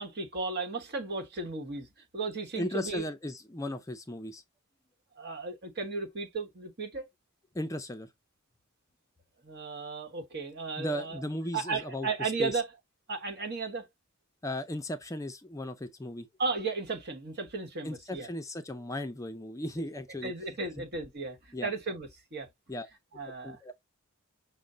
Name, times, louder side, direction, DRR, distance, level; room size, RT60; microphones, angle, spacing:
voice 1, 0.0-1.9 2.1-3.1 5.2-7.1 9.4-11.2 11.5-12.7 13.1-13.9 16.4-18.3 20.2-22.5 23.1-23.6, right 4 dB, 50° right, 1.3 m, -35 dB
voice 2, 2.5-4.4 7.5-8.1 10.8-12.5 14.4-16.3 17.8-20.3 21.5-21.7 22.7-22.9 23.4-23.7, left 1 dB, 15° left, 0.5 m, -36 dB
6.2 x 2.1 x 3.8 m
head